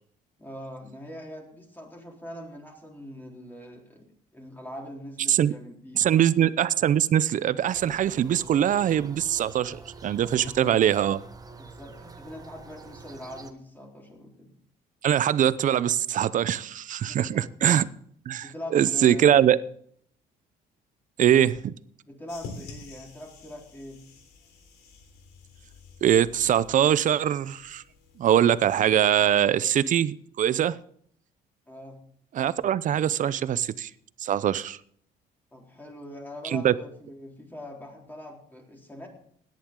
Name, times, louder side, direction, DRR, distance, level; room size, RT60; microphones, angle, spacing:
voice 1, 0.4-6.3 10.3-10.8 11.6-14.5 17.1-17.5 18.4-19.4 22.1-24.0 31.7-32.0 35.5-39.1, left 1 dB, 10° left, 0 dB, 4.0 m, -42 dB
voice 2, 6.0-11.2 15.0-17.9 18.3-19.6 21.2-21.7 26.0-27.8 28.2-30.8 32.3-33.9 34.2-34.8 36.5-36.7, right 10 dB, 50° right, 17 dB, 0.6 m, -22 dB
sound 1, 7.7-13.5, right 4 dB, 20° right, 1.2 m, -46 dB
sound 2, 22.3-29.5, left 4 dB, 75° left, 3.5 m, -48 dB
17.5 x 10.5 x 3.8 m, 0.62 s
cardioid pair, 110°, 17 cm